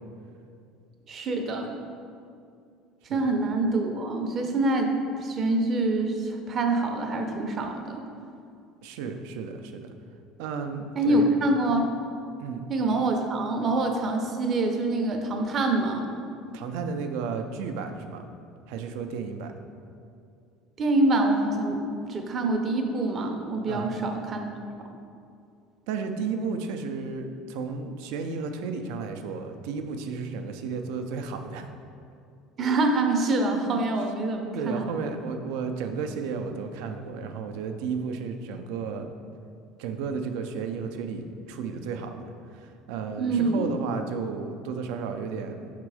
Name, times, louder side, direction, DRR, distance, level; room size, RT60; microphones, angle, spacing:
voice 1, 1.1-1.7 3.1-8.0 11.0-11.9 12.7-16.0 20.8-24.5 32.6-34.9 43.2-43.7, right 2 dB, 30° right, 4 dB, 0.6 m, -25 dB
voice 2, 8.8-9.9 10.4-11.3 12.4-12.7 16.5-18.3 18.7-19.5 23.7-23.9 25.9-31.7 34.5-39.1 39.8-45.7, right 5 dB, 75° right, 6 dB, 0.5 m, -33 dB
6.1 x 3.7 x 4.8 m, 2.4 s
cardioid pair, 160°, 0 cm